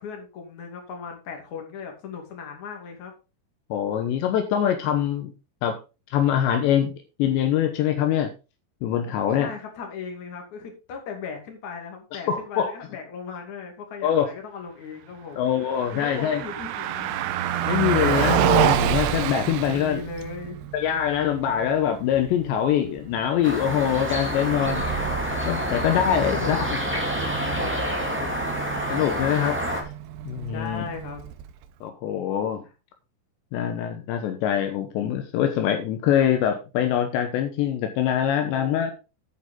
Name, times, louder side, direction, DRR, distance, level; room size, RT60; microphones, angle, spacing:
voice 1, 0.0-3.1 9.4-15.5 15.9-17.2 19.7-20.7 25.7-25.9 26.3-27.0 27.3-28.3 30.5-31.2 38.4-38.9, left 5 dB, 45° left, 3 dB, 3.6 m, -37 dB
voice 2, 3.7-5.3 5.6-5.8 6.1-6.9 7.2-8.3 8.8-9.5 12.3-12.7 14.0-14.3 15.4-16.4 17.7-20.0 20.7-24.8 25.5-26.6 28.9-29.6 30.2-30.9 31.8-32.6 33.5-38.9, left 9 dB, 80° left, 6 dB, 3.2 m, -24 dB
Car passing by, 15.5-31.7, right 11 dB, 75° right, 2.7 m, -29 dB
sound 1, 23.4-29.8, equal, 10° right, 0.5 m, -28 dB
9.9 x 9.0 x 3.8 m, 0.29 s
omnidirectional pair, 5.1 m